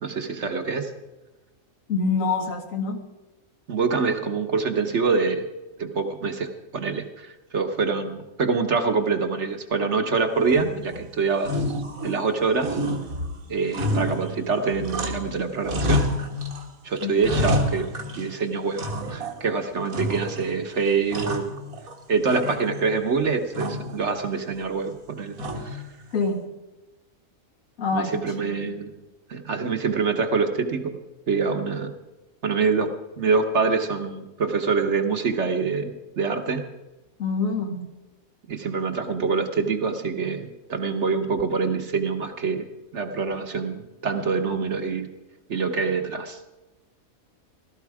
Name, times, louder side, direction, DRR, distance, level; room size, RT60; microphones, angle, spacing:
voice 1, 0.0-0.9 3.7-5.5 5.8-11.6 12.0-12.8 13.5-16.0 16.8-17.9 18.2-21.5 22.1-25.8 27.9-28.9 29.3-30.9 31.3-31.9 32.4-32.9 33.2-36.6 38.5-42.7 42.9-45.1 45.5-46.4, right 4 dB, 55° right, 6 dB, 1.4 m, -25 dB
voice 2, 1.9-3.0 17.0-17.2 26.1-26.4 27.8-28.8 37.2-37.9, left 4 dB, 65° left, 5 dB, 1.9 m, -26 dB
sound 1, 10.5-11.0 11.4-12.3 12.6-15.3 15.6-16.6 17.0-18.3 18.8-19.4 19.9-20.5 20.9-21.9 22.3-23.0 23.5-24.0 25.4-25.9, left 1 dB, 80° right, 2.1 m, -28 dB
16.0 x 13.5 x 4.8 m, 1.1 s
omnidirectional pair, 1.5 m